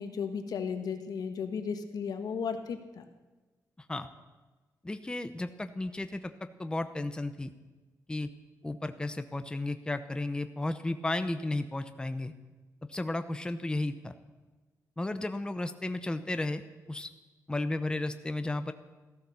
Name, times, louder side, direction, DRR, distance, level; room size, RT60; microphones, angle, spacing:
voice 1, 0.0-3.0, left 6 dB, 75° left, 7 dB, 1.5 m, -35 dB
voice 2, 3.8-4.1 4.8-7.5 8.1-8.3 8.6-12.3 12.9-14.1 15.0-16.6 16.9-17.1 17.5-18.7, left 2 dB, 15° left, 9 dB, 0.8 m, -33 dB
15.0 x 13.5 x 7.0 m, 1.2 s
cardioid pair, 110°, 7 cm